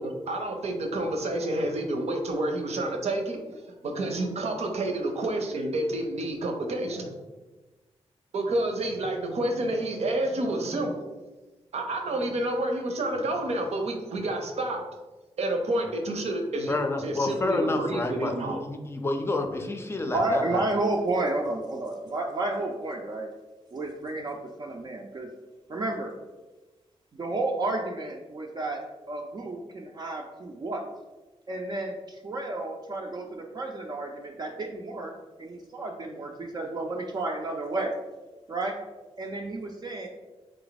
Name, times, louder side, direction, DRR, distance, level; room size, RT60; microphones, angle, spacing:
voice 1, 0.0-3.4 3.8-7.2 8.3-11.1 11.7-14.8 15.4-18.6, right 1 dB, 75° right, 3 dB, 0.8 m, -29 dB
voice 2, 16.7-20.6, left 2 dB, 20° left, 5 dB, 0.5 m, -29 dB
voice 3, 20.0-23.3 23.7-25.3 25.7-26.1 27.1-28.8 29.1-30.8 31.5-35.1 35.4-37.9 38.5-38.8 39.2-40.1, right 2 dB, 40° right, -1 dB, 0.4 m, -31 dB
3.8 x 3.4 x 4.0 m, 1.2 s
wide cardioid pair, 140°, 11 cm